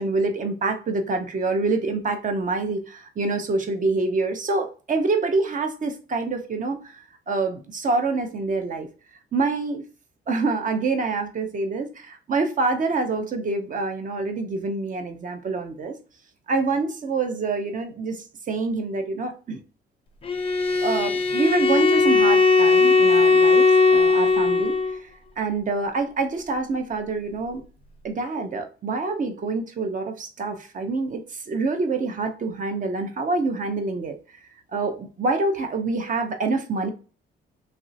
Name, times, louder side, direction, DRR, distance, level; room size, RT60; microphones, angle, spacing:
voice 1, 0.0-8.9 9.3-9.8 10.3-16.0 16.5-19.6 20.8-23.6 23.9-25.1 25.4-27.6 28.0-34.2 34.7-36.9, right 3 dB, 40° right, 0.7 m, -26 dB
Bowed string instrument, 20.2-25.0, left 4 dB, 30° left, 0.5 m, -18 dB
3.1 x 2.7 x 2.6 m
cardioid pair, 90°, 20 cm